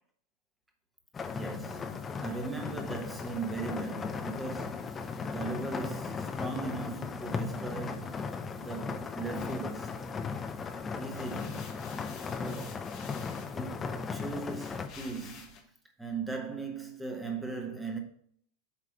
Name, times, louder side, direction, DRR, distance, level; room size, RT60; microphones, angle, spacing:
sound 1, 1.1-14.9, left 5 dB, 20° left, 0.6 m, -37 dB
voice 1, 1.3-10.0 11.0-11.7 12.4-12.8 13.5-15.7 16.0-18.0, right 3 dB, 5° right, 1.3 m, -39 dB
sound 2, 9.4-10.5 10.9-15.6, left 5 dB, 40° left, 1.3 m, -51 dB
8.3 x 3.3 x 5.6 m
figure-of-eight pair, 90°, 0 cm